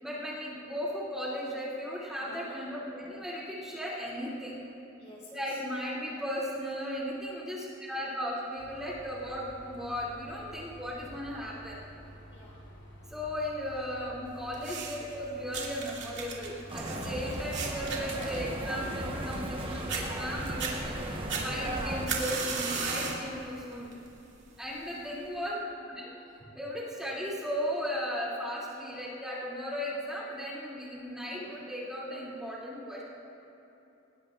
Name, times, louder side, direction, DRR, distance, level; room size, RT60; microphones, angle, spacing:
voice 1, 0.0-4.6 5.3-11.8 13.1-23.9 24.6-25.6 25.9-26.1 26.5-33.0, equal, 5° right, -7 dB, 2.6 m, -36 dB
voice 2, 2.2-2.6 5.0-5.6 12.3-12.6 17.1-17.5 22.9-23.4 26.4-26.6 31.2-31.6, left 1 dB, 30° left, -4 dB, 2.6 m, -53 dB
sound 1, 8.6-20.6, equal, 55° left, 3.1 m, -50 dB
sound 2, 14.5-15.1 15.5-19.6 19.9-20.0 20.5-20.7 21.3-23.3 23.7-24.1 24.9-25.0, right 5 dB, 55° right, 2.4 m, -35 dB
sound 3, 16.7-22.1, right 1 dB, 25° right, 1.2 m, -36 dB
20.5 x 19.0 x 2.5 m, 2.9 s
head